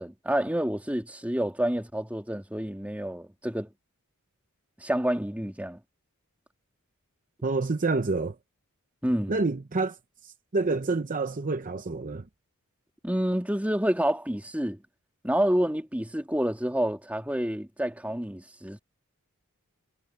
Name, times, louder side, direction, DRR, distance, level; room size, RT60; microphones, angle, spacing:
voice 1, 0.0-3.7 4.8-5.8 9.0-9.3 13.0-14.8 15.2-18.8, equal, 5° right, 2.3 m, -28 dB
voice 2, 7.4-8.4 9.3-12.3, right 3 dB, 35° right, 0.7 m, -28 dB
head